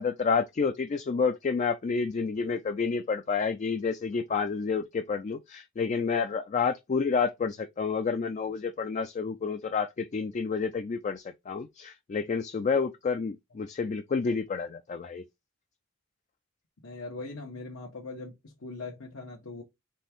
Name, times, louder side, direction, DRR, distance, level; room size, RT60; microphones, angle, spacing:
voice 1, 0.0-15.2, left 5 dB, 35° left, 0.3 m, -29 dB
voice 2, 16.8-19.6, left 3 dB, 85° left, 1.1 m, -41 dB
4.2 x 3.4 x 3.5 m
head